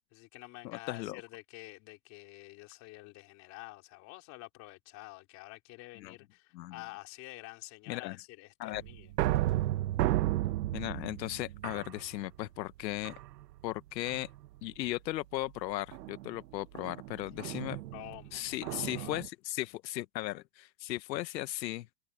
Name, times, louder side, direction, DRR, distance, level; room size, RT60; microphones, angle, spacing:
voice 1, 0.1-9.1 17.9-19.2, left 21 dB, 35° left, 3.6 m, -49 dB
voice 2, 0.6-1.2 6.0-6.1 6.5-6.8 7.9-8.2 8.6-8.8 10.7-13.1 13.6-14.3 14.6-17.8 18.3-21.9, left 16 dB, 90° left, 1.0 m, -37 dB
sound 1, 8.7-12.5 13.0-13.6 14.1-14.5 15.9-19.3, right 15 dB, 75° right, 1.2 m, -34 dB
supercardioid pair, 170°, 49 cm